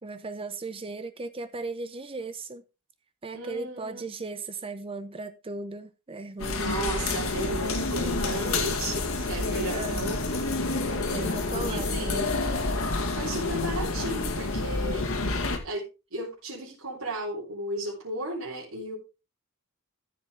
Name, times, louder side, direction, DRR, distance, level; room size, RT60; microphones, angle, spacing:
voice 1, 0.0-2.6 3.2-6.7 9.7-10.1 11.1-12.5, right 3 dB, 25° right, 0.6 m, -37 dB
voice 2, 3.3-4.1 6.6-10.7 11.6-12.3 13.1-15.0 15.6-19.0, right 1 dB, 80° right, 3.5 m, -34 dB
sound 1, 6.4-15.6, left 3 dB, 70° left, 2.1 m, -29 dB
13.5 x 7.4 x 3.5 m
head